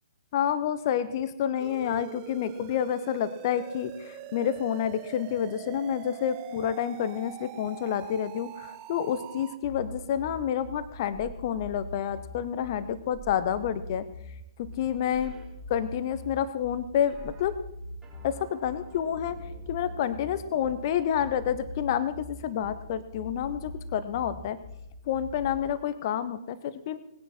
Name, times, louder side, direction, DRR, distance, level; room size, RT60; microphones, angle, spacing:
voice 1, 0.3-14.0 14.6-15.3 15.7-17.5 18.2-19.4 19.7-24.6 25.1-27.0, left 9 dB, 35° left, 13 dB, 0.8 m, -29 dB
sound 1, 1.6-9.6, right 13 dB, 25° right, 0.6 m, -44 dB
sound 2, 9.6-25.6, left 1 dB, 20° left, 2.4 m, -42 dB
sound 3, 13.3-13.7 15.2-15.5 17.1-17.4 18.0-20.8, right 4 dB, 10° right, 4.4 m, -52 dB
19.0 x 10.0 x 4.3 m, 0.85 s
figure-of-eight pair, 125°, 3 cm